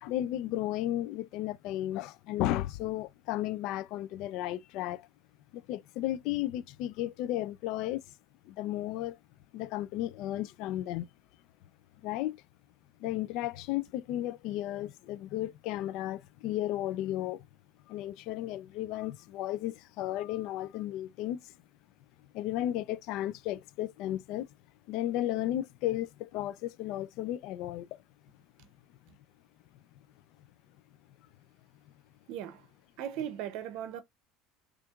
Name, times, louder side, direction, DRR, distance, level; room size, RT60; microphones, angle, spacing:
voice 1, 0.0-5.1 5.5-8.0 8.5-9.2 9.5-11.1 12.0-12.4 13.0-17.5 17.9-21.5 22.3-24.5 24.9-28.0, left 14 dB, 65° left, 0.3 m, -34 dB
voice 2, 32.3-32.7 33.0-34.0, right 10 dB, 70° right, 0.6 m, -37 dB
4.3 x 2.4 x 2.3 m
supercardioid pair, 105°, 0 cm